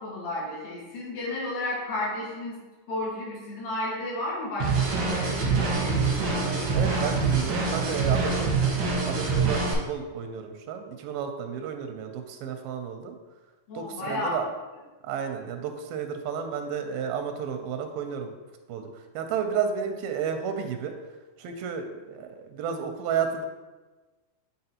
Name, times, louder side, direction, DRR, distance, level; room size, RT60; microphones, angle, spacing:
voice 1, 0.0-2.6 2.9-6.4 13.7-14.4, left 1 dB, 85° left, -7 dB, 3.4 m, -33 dB
sound 1, 4.6-9.7, right 4 dB, 70° right, 1.2 m, -25 dB
voice 2, 6.7-13.2 13.7-14.5 15.0-18.3 18.7-20.9 21.4-23.5, right 7 dB, 90° right, 6 dB, 2.3 m, -32 dB
8.7 x 3.8 x 2.8 m, 1.2 s
omnidirectional pair, 4.0 m